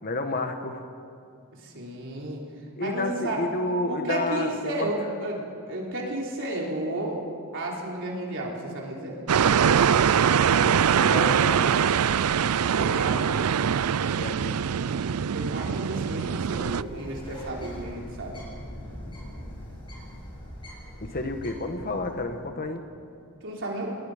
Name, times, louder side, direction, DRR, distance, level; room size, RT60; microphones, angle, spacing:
voice 1, 0.0-0.8 2.8-4.9 10.5-11.6 14.2-14.6 21.0-22.8, left 2 dB, 45° left, 6 dB, 1.4 m, -30 dB
voice 2, 1.5-2.4 2.8-3.4 3.9-7.2 7.5-9.2 12.8-13.3 15.3-18.4 23.4-24.0, right 1 dB, 60° right, -2 dB, 4.0 m, -32 dB
sound 1, 9.3-16.8, right 7 dB, 75° right, 0.5 m, -23 dB
Bird, 16.5-22.4, equal, 25° left, 7.3 m, -41 dB
28.5 x 20.0 x 5.2 m, 2.5 s
head